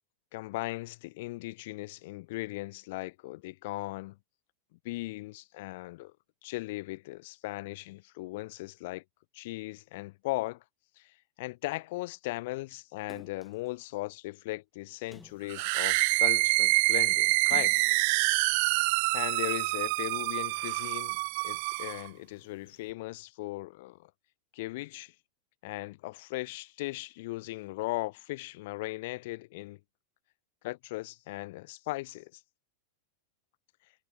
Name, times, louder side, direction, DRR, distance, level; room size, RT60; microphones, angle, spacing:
voice 1, 0.3-4.2 4.8-6.1 6.4-9.0 9.3-10.6 11.0-17.8 19.1-21.2 21.4-24.1 24.5-25.1 25.6-29.8 30.6-32.4, left 20 dB, 50° left, 0.6 m, -38 dB
Splash splatter, 13.1-13.7 15.0-16.3 17.4-18.2 18.8-18.9, left 2 dB, 10° left, 5.7 m, -53 dB
sound 1, 15.5-22.1, right 29 dB, 45° right, 0.5 m, -26 dB
figure-of-eight pair, 90°, 0 cm